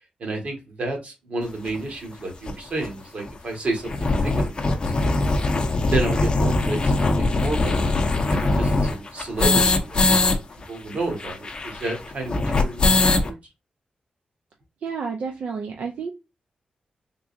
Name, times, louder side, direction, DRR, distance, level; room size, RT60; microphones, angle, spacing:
voice 1, 0.2-5.3 5.9-7.9 8.3-10.0 10.3-13.4, right 2 dB, 55° right, 1 dB, 1.4 m, -31 dB
sound 1, 1.7-1.8 2.5-2.6 2.8-2.9 3.2-3.3 3.7-10.4 10.6-10.7 10.9-13.3, left 2 dB, 35° left, 0.6 m, -21 dB
voice 2, 14.8-16.1, right 5 dB, 80° right, 2 dB, 0.5 m, -30 dB
3.7 x 3.0 x 2.6 m, 0.26 s
wide cardioid pair, 150°, 3 cm